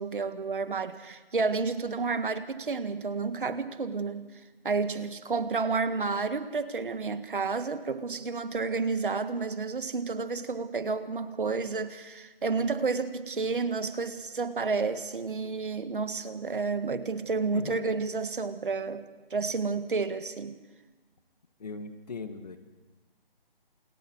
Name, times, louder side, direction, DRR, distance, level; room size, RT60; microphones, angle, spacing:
voice 1, 0.0-4.3 4.6-20.6, right 4 dB, 60° right, 10 dB, 1.8 m, -30 dB
voice 2, 21.6-22.6, left 4 dB, 45° left, 9 dB, 1.9 m, -39 dB
28.0 x 27.5 x 4.8 m, 1.2 s
hypercardioid pair, 175°, 30 cm